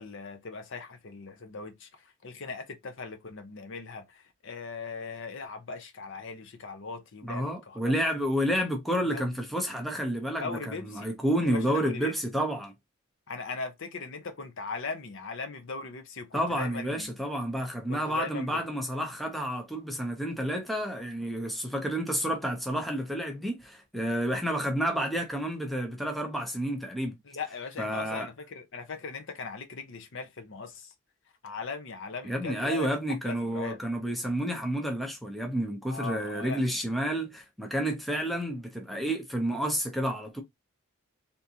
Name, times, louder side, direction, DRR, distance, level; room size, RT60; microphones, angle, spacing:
voice 1, 0.0-7.9 9.1-9.3 10.4-11.1 11.5-12.1 13.3-17.2 17.9-18.6 27.2-30.9 31.4-32.9 33.2-33.8 35.9-36.8, left 4 dB, 55° left, 0.7 m, -39 dB
voice 2, 7.2-12.7 16.3-27.2 27.8-28.3 32.2-40.4, equal, ahead, 0.6 m, -30 dB
3.5 x 2.7 x 2.7 m
head